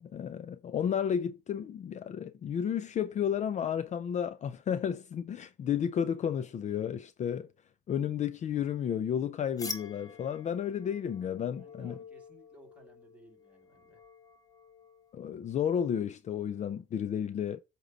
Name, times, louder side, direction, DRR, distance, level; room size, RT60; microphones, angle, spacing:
voice 1, 0.0-7.5 7.9-12.0 15.1-17.6, left 8 dB, 45° left, 0.5 m, -32 dB
sound 1, 9.6-15.1, left 4 dB, 20° left, 1.1 m, -47 dB
voice 2, 11.6-14.0, right 2 dB, 10° right, 2.5 m, -59 dB
8.0 x 3.0 x 5.3 m
cardioid pair, 110°, 17 cm